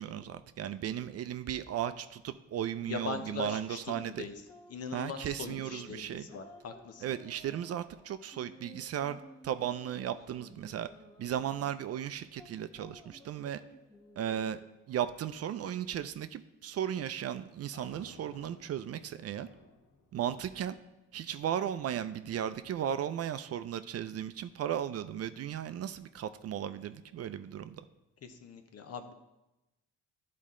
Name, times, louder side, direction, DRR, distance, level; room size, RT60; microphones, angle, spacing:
voice 1, 0.0-4.3 4.9-6.3 7.0-10.9 11.2-13.6 14.2-14.6 14.9-19.5 20.1-20.8 21.1-27.8, right 10 dB, 55° right, 12 dB, 0.5 m, -36 dB
voice 2, 2.9-4.3 4.7-7.0 28.2-29.1, left 6 dB, 55° left, 7 dB, 0.9 m, -41 dB
sound 1, 4.3-14.6, left 1 dB, 10° left, 1.0 m, -55 dB
sound 2, 17.7-21.8, left 3 dB, 85° left, 1.5 m, -58 dB
11.5 x 4.2 x 3.7 m, 0.98 s
cardioid pair, 90°, 30 cm